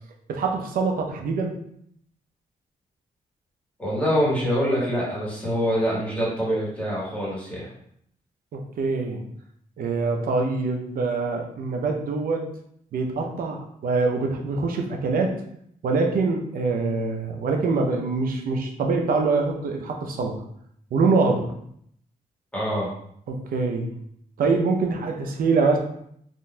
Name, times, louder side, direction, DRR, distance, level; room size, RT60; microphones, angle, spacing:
voice 1, 0.3-1.5 8.5-9.2 9.8-12.4 12.9-15.4 15.8-20.4 20.9-21.5 23.3-23.9 24.4-25.8, right 4 dB, 70° right, 3 dB, 0.6 m, -24 dB
voice 2, 3.8-7.7 22.5-22.9, equal, 10° left, -6 dB, 1.3 m, -25 dB
3.8 x 2.5 x 2.2 m, 0.69 s
cardioid pair, 115°, 15 cm